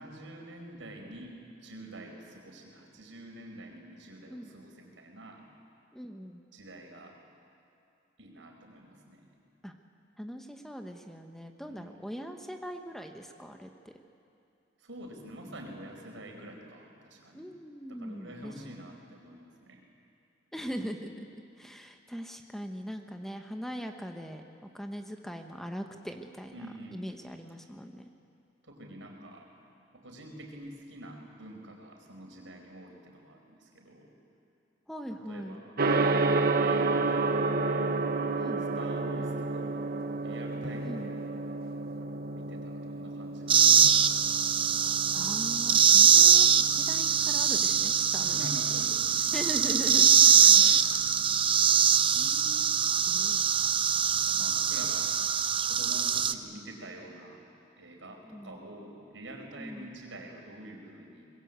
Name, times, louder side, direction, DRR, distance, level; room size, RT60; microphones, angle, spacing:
voice 1, 0.0-5.5 6.5-7.2 8.2-9.3 11.7-11.9 14.8-17.4 17.9-19.9 26.5-27.1 28.6-29.5 29.9-34.1 35.1-35.8 36.2-37.6 38.4-41.3 42.3-44.3 48.2-49.7 50.1-51.9 54.1-55.2 55.6-57.4 57.8-61.3, right 1 dB, 80° right, 2 dB, 4.6 m, -47 dB
voice 2, 5.9-6.4 9.6-9.7 10.2-13.9 17.3-18.5 20.5-21.3 21.6-26.7 26.9-28.1 34.9-35.6 38.4-38.6 40.8-41.1 45.1-48.4 48.7-48.8 49.3-50.2 50.7-50.8 52.1-53.4 58.3-58.6 59.6-59.9, equal, ahead, 4 dB, 1.0 m, -40 dB
Gong, 35.8-54.7, right 3 dB, 50° right, 1.0 m, -33 dB
sound 1, 43.5-56.3, right 7 dB, 25° right, 0.6 m, -23 dB
25.0 x 21.0 x 8.1 m, 2.7 s
head